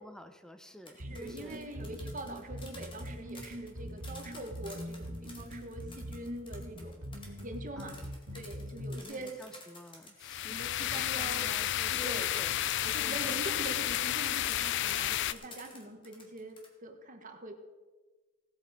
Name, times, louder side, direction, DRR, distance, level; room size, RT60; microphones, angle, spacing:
voice 1, 0.0-1.6 7.8-8.1 9.0-12.6 13.0-13.3 15.6-15.7, equal, 5° left, 9 dB, 0.7 m, -50 dB
sound 1, 0.7-10.3 10.9-16.7, left 2 dB, 25° left, 2.2 m, -53 dB
voice 2, 1.0-7.0 7.4-8.0 8.3-9.4 10.5-11.5 11.9-12.2 12.8-17.5, right 1 dB, 40° right, 5 dB, 1.5 m, -43 dB
sound 2, 1.0-9.0, equal, 80° right, 2.0 m, -43 dB
sound 3, 10.2-15.3, left 12 dB, 65° left, 0.4 m, -31 dB
17.0 x 8.1 x 5.1 m, 1.3 s
head